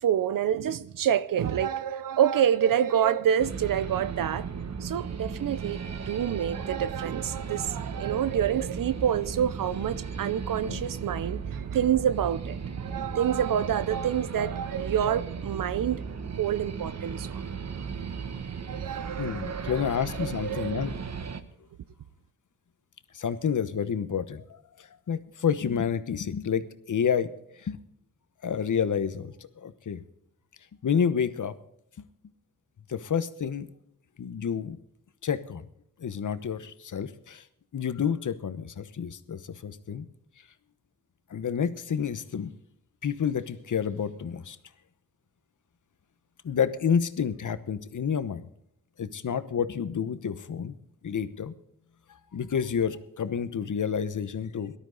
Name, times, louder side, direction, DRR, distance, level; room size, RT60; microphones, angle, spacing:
voice 1, 0.0-4.5 4.8-16.0 16.4-17.4 18.7-19.8 20.2-20.8, right 9 dB, 85° right, 0.6 m, -27 dB
sound 1, 3.4-21.4, right 6 dB, 55° right, 1.2 m, -36 dB
voice 2, 19.2-21.0 23.1-27.3 27.6-27.8 28.4-29.3 29.6-30.0 30.8-31.6 32.9-33.7 34.2-34.8 35.2-35.7 36.0-37.4 37.7-40.1 41.3-42.5 43.0-44.6 46.4-48.5 49.0-50.8 51.0-51.5 52.3-54.7, left 7 dB, 65° left, 1.1 m, -29 dB
18.5 x 12.5 x 3.9 m
wide cardioid pair, 85°, 32 cm